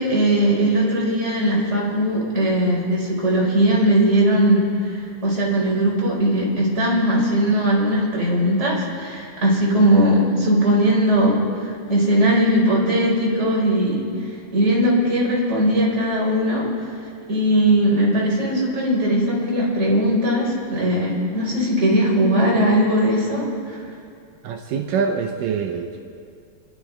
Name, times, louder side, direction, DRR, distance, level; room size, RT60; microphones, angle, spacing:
voice 1, 0.0-17.0 17.3-23.8, equal, 20° right, -4 dB, 3.7 m, -19 dB
voice 2, 24.4-26.0, right 6 dB, 80° right, 2 dB, 2.5 m, -25 dB
28.0 x 11.5 x 3.5 m, 2.3 s
omnidirectional pair, 3.8 m